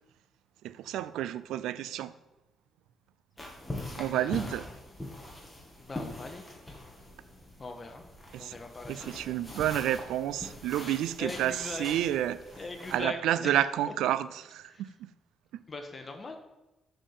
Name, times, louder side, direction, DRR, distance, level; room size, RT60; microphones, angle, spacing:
voice 1, 0.6-2.1 4.0-4.6 8.3-8.5 8.9-12.4 12.9-15.1, right 12 dB, 85° right, 16 dB, 0.4 m, -30 dB
sound 1, 3.4-13.0, left 1 dB, 10° left, 2.2 m, -43 dB
voice 2, 4.1-4.7 5.8-6.6 7.6-8.0 8.4-9.1 11.2-11.9 12.6-13.6 14.7-14.8 15.7-16.4, left 3 dB, 30° left, 5 dB, 1.4 m, -41 dB
7.3 x 6.7 x 5.5 m, 0.99 s
cardioid pair, 90°, 0 cm